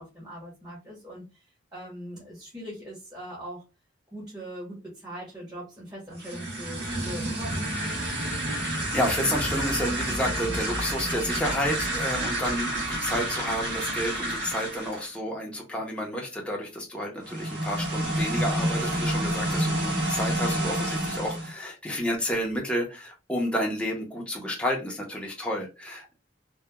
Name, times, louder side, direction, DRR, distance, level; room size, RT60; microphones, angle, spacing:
voice 1, 0.0-3.6 4.1-7.7 20.5-20.8, equal, 20° right, -6 dB, 0.9 m, -41 dB
sound 1, 6.1-15.1 17.2-21.5, right 1 dB, 60° right, 1.2 m, -29 dB
voice 2, 8.1-26.2, equal, 5° left, -1 dB, 0.6 m, -30 dB
2.8 x 2.2 x 2.2 m, 0.28 s
head